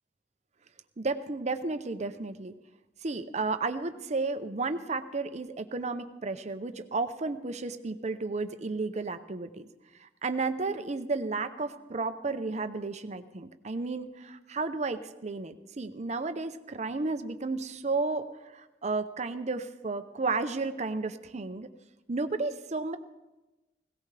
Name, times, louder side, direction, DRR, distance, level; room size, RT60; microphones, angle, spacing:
voice 1, 1.0-2.5 3.0-9.7 10.0-18.3 18.5-21.7 22.1-23.0, right 3 dB, 40° right, 10 dB, 0.7 m, -33 dB
17.5 x 17.0 x 3.3 m, 1.1 s
head